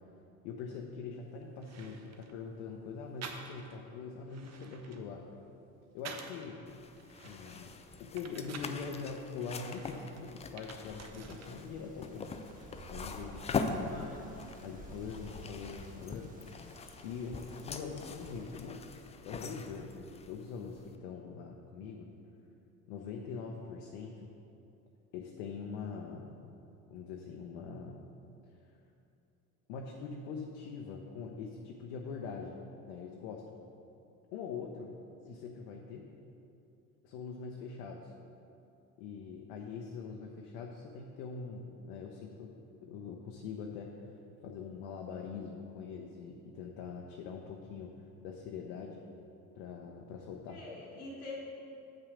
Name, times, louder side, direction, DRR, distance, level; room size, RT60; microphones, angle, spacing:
voice 1, 0.4-5.2 5.9-6.6 7.2-12.3 12.9-14.1 14.4-18.9 19.2-22.1 22.9-24.3 25.1-26.3 26.9-28.1 29.7-33.6 34.3-34.9 35.3-36.1 37.0-38.1 39.0-42.5 42.8-44.1 44.4-49.0 49.5-50.6, left 5 dB, 65° left, 1 dB, 0.8 m, -43 dB
sound 1, 1.2-1.3 1.6-2.4 3.2-3.8 4.2-6.5 6.9-8.8 9.4-11.5 11.8-12.6, right 5 dB, 35° right, 0.9 m, -49 dB
sound 2, 6.7-21.0, left 4 dB, 15° left, 0.4 m, -43 dB
Wind, 10.8-18.7, right 1 dB, 20° right, 1.3 m, -52 dB
voice 2, 13.6-14.3 50.5-51.4, left 2 dB, 85° left, -4 dB, 1.3 m, -46 dB
8.0 x 5.7 x 4.9 m, 2.7 s
figure-of-eight pair, 60°, 44 cm